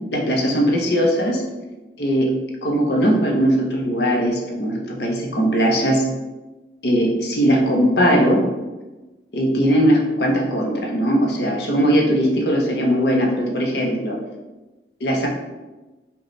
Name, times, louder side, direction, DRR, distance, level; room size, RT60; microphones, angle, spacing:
voice 1, 0.1-1.4 2.0-2.3 2.6-6.0 6.8-8.4 9.3-14.2 15.0-15.3, equal, 65° left, 0 dB, 0.7 m, -19 dB
5.0 x 2.3 x 3.1 m, 1.1 s
head